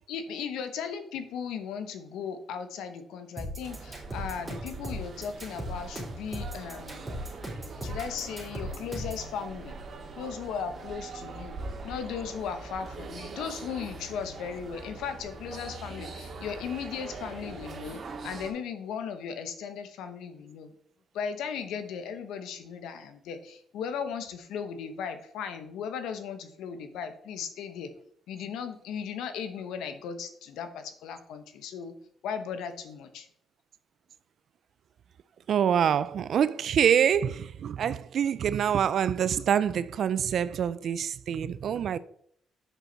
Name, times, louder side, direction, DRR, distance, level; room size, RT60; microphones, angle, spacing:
voice 1, 0.1-7.2 7.8-9.7 10.2-11.6 11.8-20.7 21.1-27.9 28.3-31.9 32.2-33.3, left 7 dB, 85° left, 1.0 m, -37 dB
sound 1, 3.4-9.3, equal, 15° right, 3.7 m, -37 dB
sound 2, 3.6-18.5, right 3 dB, 45° right, 1.8 m, -42 dB
voice 2, 35.5-42.0, right 8 dB, 65° right, 0.3 m, -26 dB
7.9 x 6.1 x 4.0 m
cardioid pair, 90°, 0 cm